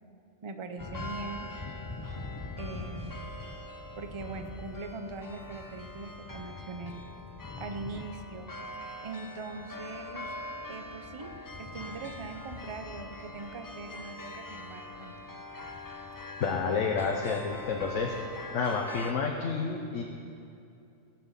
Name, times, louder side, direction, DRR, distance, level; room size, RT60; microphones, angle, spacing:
voice 1, 0.4-1.5 2.6-3.2 4.0-6.9 7.6-8.5 9.0-10.3 10.7-11.3 11.6-15.4, right 3 dB, 30° right, 7 dB, 0.6 m, -41 dB
sound 1, 0.8-19.1, left 2 dB, 35° left, 0.3 m, -42 dB
voice 2, 16.4-18.1 18.5-20.0, left 5 dB, 85° left, 1 dB, 1.2 m, -29 dB
15.0 x 6.1 x 7.3 m, 2.6 s
omnidirectional pair, 1.3 m